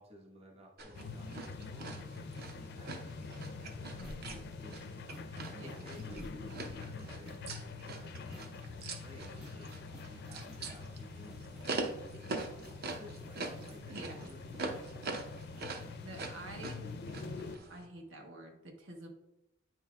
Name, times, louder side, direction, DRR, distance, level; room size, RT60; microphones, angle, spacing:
voice 1, 0.0-2.3 2.5-5.1 5.4-11.3 11.7-15.0, equal, 30° right, -1 dB, 1.2 m, -56 dB
sound 1, 0.8-17.9, right 3 dB, 50° right, 0.7 m, -44 dB
sound 2, 0.9-17.6, left 4 dB, 55° left, 0.4 m, -46 dB
sound 3, 3.9-17.5, equal, ahead, 0.6 m, -58 dB
voice 2, 5.5-5.8 13.9-14.3 16.0-16.8 17.3-19.1, right 1 dB, 80° right, 1 dB, 1.1 m, -48 dB
9.0 x 5.7 x 2.3 m, 0.91 s
head